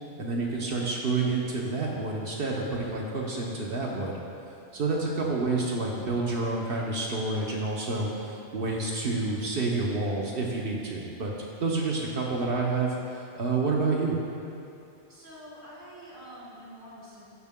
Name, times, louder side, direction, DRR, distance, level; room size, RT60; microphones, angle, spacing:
voice 1, 0.2-4.1 4.7-11.3 11.6-14.2, right 3 dB, 65° right, -2 dB, 1.0 m, -29 dB
voice 2, 15.1-17.3, equal, 35° right, -7 dB, 2.1 m, -46 dB
13.5 x 7.2 x 2.2 m, 2.7 s
omnidirectional pair, 1.1 m